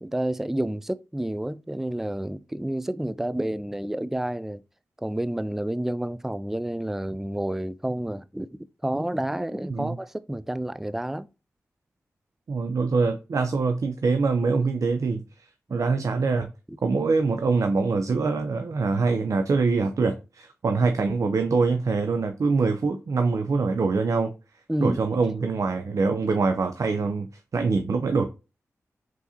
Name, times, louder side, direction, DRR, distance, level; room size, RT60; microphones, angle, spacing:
voice 1, 0.0-4.6 5.0-8.5 8.8-11.3 16.7-16.8 24.7-25.0, right 1 dB, 5° right, 0.3 m, -29 dB
voice 2, 12.5-15.2 15.7-16.5 16.8-24.3 24.8-27.3 27.5-28.3, right 4 dB, 70° right, 0.5 m, -24 dB
4.9 x 4.0 x 2.7 m
cardioid pair, 45°, 6 cm